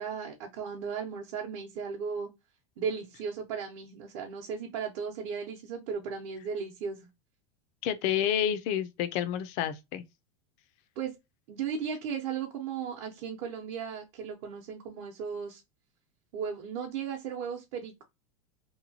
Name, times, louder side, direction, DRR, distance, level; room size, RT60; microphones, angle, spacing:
voice 1, 0.0-2.3 2.8-7.1 11.0-11.1 11.5-15.6 16.3-18.0, right 6 dB, 55° right, 0.8 m, -36 dB
voice 2, 7.8-10.0, left 10 dB, 45° left, 0.5 m, -29 dB
3.0 x 2.2 x 2.6 m
supercardioid pair, 145°, 16 cm